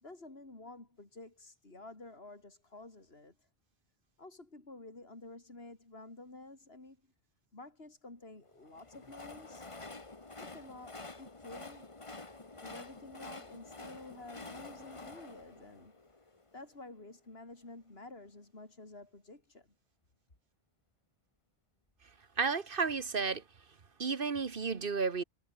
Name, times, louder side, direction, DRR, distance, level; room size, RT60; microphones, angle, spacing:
voice 1, 0.0-3.3 4.2-7.0 7.5-9.7 10.3-11.9 12.6-16.0 16.5-19.7, left 2 dB, 75° left, 4.2 m, -51 dB
Train, 8.6-16.7, left 3 dB, 30° left, 1.6 m, -49 dB
voice 2, 22.4-23.4 24.0-25.2, right 5 dB, 60° right, 1.4 m, -32 dB
omnidirectional pair, 1.0 m